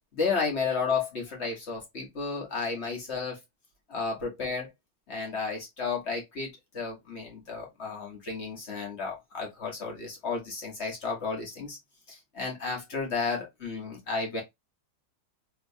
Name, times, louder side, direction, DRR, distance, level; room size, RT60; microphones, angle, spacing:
voice 1, 0.1-3.4 3.9-4.7 5.1-6.5 6.7-11.8 12.1-14.4, left 4 dB, 40° left, 1.3 m, -32 dB
3.3 x 2.9 x 2.6 m
omnidirectional pair, 2.0 m